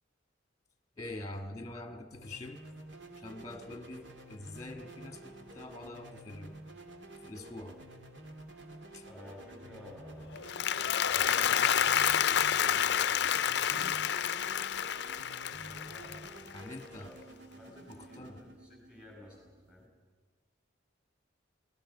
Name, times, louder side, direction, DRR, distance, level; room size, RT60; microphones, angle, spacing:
voice 1, 1.0-2.6 3.2-6.5 7.2-7.8 8.9-9.0 16.5-17.1 17.7-18.4, left 2 dB, 20° left, 6 dB, 1.6 m, -45 dB
sound 1, 2.1-19.9, right 1 dB, 70° right, 2.6 m, -50 dB
voice 2, 9.0-10.4 11.0-14.2 15.5-16.5 16.8-19.9, left 1 dB, 5° right, -2 dB, 7.2 m, -53 dB
Applause, 10.3-16.7, left 9 dB, 60° left, 0.5 m, -29 dB
27.5 x 19.0 x 5.6 m, 1.5 s
head